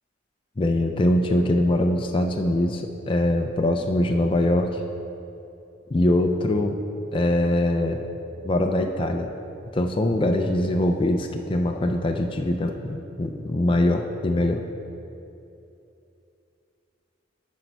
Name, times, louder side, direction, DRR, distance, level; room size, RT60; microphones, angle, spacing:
voice 1, 0.6-4.8 5.9-6.8 7.1-8.1 8.4-9.3 9.7-14.6, left 1 dB, 25° left, 3 dB, 0.4 m, -23 dB
10.0 x 5.3 x 4.5 m, 2.8 s
head